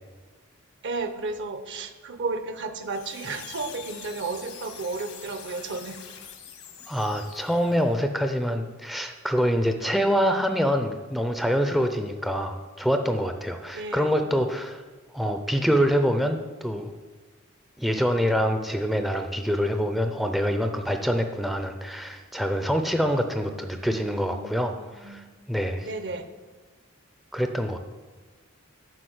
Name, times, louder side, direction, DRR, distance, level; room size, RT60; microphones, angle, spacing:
voice 1, 0.8-6.0 13.7-14.1 23.5-25.2 25.8-26.3, right 3 dB, 60° right, 9 dB, 0.9 m, -33 dB
sound 1, 2.8-8.0, left 7 dB, 80° left, 1.5 m, -44 dB
voice 2, 6.9-14.8 15.1-16.9 17.8-25.9 27.3-27.8, equal, ahead, 6 dB, 0.5 m, -25 dB
7.7 x 5.9 x 7.8 m, 1.3 s
head